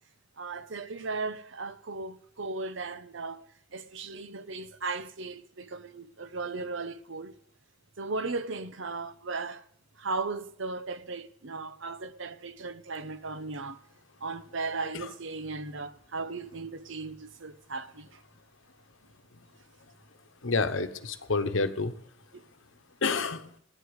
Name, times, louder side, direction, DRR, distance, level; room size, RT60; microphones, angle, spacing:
voice 1, 0.4-3.4 3.7-7.3 8.0-9.6 10.0-13.8 14.2-18.1 22.3-22.4, right 3 dB, 65° right, 0.9 m, -36 dB
voice 2, 20.4-21.9 23.0-23.5, left 4 dB, 70° left, 1.1 m, -28 dB
10.0 x 8.2 x 9.7 m
head